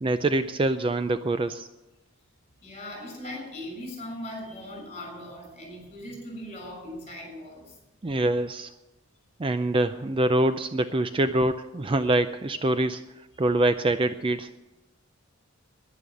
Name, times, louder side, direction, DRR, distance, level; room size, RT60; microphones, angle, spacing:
voice 1, 0.0-1.7 8.0-8.7 9.4-13.0 13.4-14.5, right 2 dB, 25° right, 11 dB, 0.4 m, -25 dB
voice 2, 2.6-7.8 12.0-12.1 13.3-13.5, left 1 dB, 30° left, 2 dB, 6.6 m, -39 dB
10.5 x 10.5 x 9.1 m, 1.0 s
head